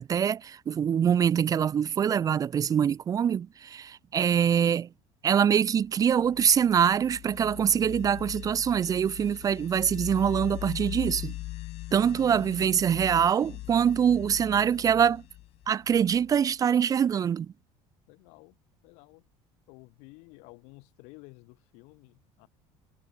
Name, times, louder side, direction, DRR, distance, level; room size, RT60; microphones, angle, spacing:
voice 1, 0.0-4.9 5.2-11.3 11.9-15.2 15.7-17.5, right 8 dB, 30° right, 0.6 m, -24 dB
sound 1, 6.0-16.5, left 17 dB, 65° left, 2.5 m, -41 dB
voice 2, 13.6-13.9 18.1-18.6 18.8-19.2 19.7-22.5, left 30 dB, 90° left, 7.4 m, -53 dB
cardioid pair, 140°, 12 cm